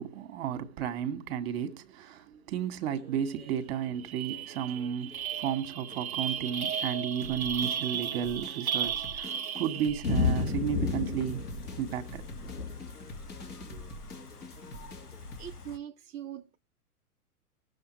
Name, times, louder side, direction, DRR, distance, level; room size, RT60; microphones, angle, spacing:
voice 1, 0.0-11.5 11.8-12.2, right 9 dB, 40° right, 1.8 m, -33 dB
sound 1, 2.9-5.4 5.9-15.5, left 1 dB, 20° left, 2.1 m, -47 dB
sound 2, 3.4-3.5 3.8-10.2, right 8 dB, 70° right, 0.8 m, -35 dB
Thunder / Rain, 10.0-15.8, left 5 dB, 85° left, 1.5 m, -34 dB
voice 2, 15.4-16.6, right 10 dB, 15° right, 0.7 m, -42 dB
20.0 x 7.0 x 3.1 m
figure-of-eight pair, 110°, 44 cm